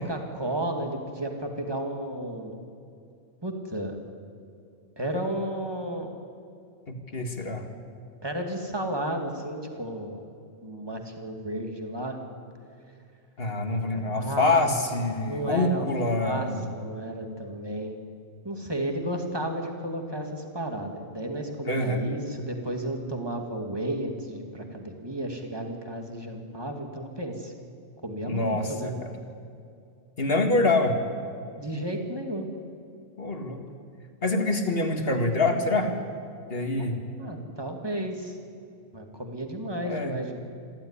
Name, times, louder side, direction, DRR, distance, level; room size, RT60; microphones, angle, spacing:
voice 1, 0.0-2.6 3.4-4.0 5.0-6.1 8.2-10.3 10.6-12.2 14.1-14.8 15.2-15.9 16.2-18.0 18.4-27.5 28.0-28.9 31.6-32.5 36.8-36.9 37.2-38.4 38.9-40.4, right 1 dB, 20° right, 3 dB, 2.5 m, -33 dB
voice 2, 6.9-7.6 13.4-16.7 21.6-22.0 28.2-29.1 30.2-31.0 33.2-33.6 34.2-35.9 36.5-37.0 39.8-40.1, left 2 dB, 50° left, 5 dB, 2.3 m, -26 dB
27.0 x 13.0 x 10.0 m, 2.4 s
omnidirectional pair, 1.3 m